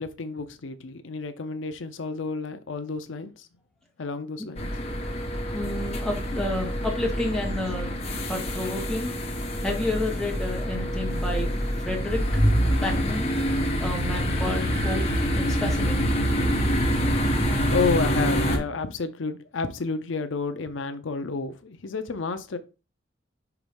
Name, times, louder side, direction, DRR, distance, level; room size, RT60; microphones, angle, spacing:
voice 1, 0.0-3.5 4.0-4.7 17.7-22.6, left 4 dB, 75° left, 0.6 m, -30 dB
sound 1, 4.6-18.6, equal, 35° left, 1.5 m, -26 dB
voice 2, 5.5-7.9 8.3-9.1 9.6-11.5 11.8-12.2 12.6-13.3 13.8-16.2, left 1 dB, 5° left, 1.6 m, -30 dB
5.9 x 3.1 x 5.2 m
head